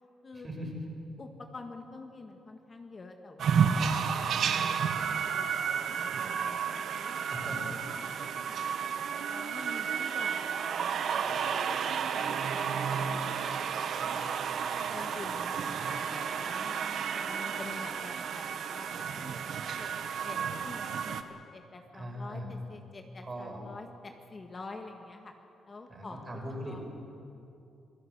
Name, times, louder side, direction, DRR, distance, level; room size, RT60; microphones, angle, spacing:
voice 1, 0.3-0.7 7.3-7.7 21.9-22.5 23.2-23.6 25.9-26.8, equal, 30° right, 1 dB, 5.8 m, -40 dB
voice 2, 1.2-8.9 9.3-13.4 14.1-14.3 14.9-15.5 15.8-16.8 17.2-19.5 19.8-25.3 25.7-26.8, left 3 dB, 35° left, 4 dB, 1.7 m, -48 dB
sound 1, 3.4-21.2, right 7 dB, 65° right, 1.3 m, -32 dB
sound 2, 9.0-19.1, right 4 dB, 85° right, 3.5 m, -49 dB
27.0 x 17.0 x 8.2 m, 2.8 s
cardioid pair, 100°, 0 cm